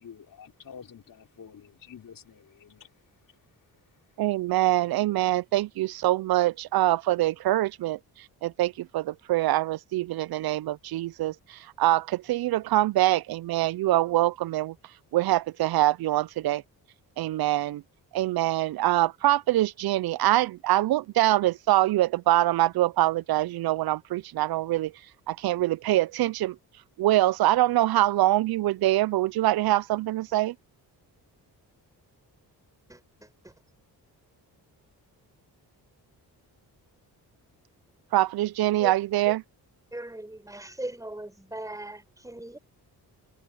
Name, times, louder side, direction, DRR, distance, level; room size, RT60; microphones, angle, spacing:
voice 1, 0.0-2.9, left 7 dB, 55° left, 4.5 m, -48 dB
voice 2, 4.2-8.0 8.4-14.7 15.1-16.6 17.2-17.8 18.1-24.9 25.3-26.6 27.0-30.5 38.1-39.4, right 15 dB, 65° right, 0.5 m, -24 dB
voice 3, 32.9-33.5 38.8-38.9 39.3-39.4 39.9-42.6, right 1 dB, 10° right, 5.4 m, -39 dB
cardioid pair, 90°, 39 cm